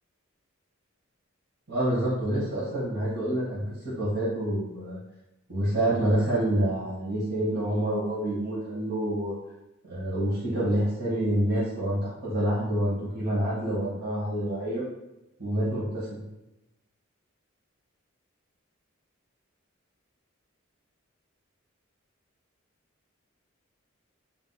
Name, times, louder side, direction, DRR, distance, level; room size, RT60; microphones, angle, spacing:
voice 1, 1.7-5.0 5.5-9.4 9.9-14.8 15.4-16.2, right 1 dB, 50° right, -8 dB, 1.2 m, -27 dB
2.8 x 2.3 x 3.8 m, 0.93 s
head